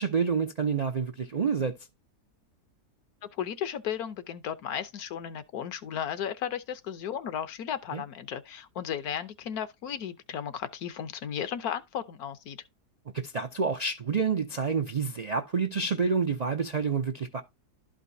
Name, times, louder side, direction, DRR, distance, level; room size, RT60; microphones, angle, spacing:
voice 1, 0.0-1.8 7.9-8.0 13.1-17.4, right 5 dB, 85° right, 0.3 m, -28 dB
voice 2, 3.4-12.6, left 9 dB, 70° left, 1.3 m, -35 dB
12.0 x 5.1 x 2.7 m
omnidirectional pair, 1.7 m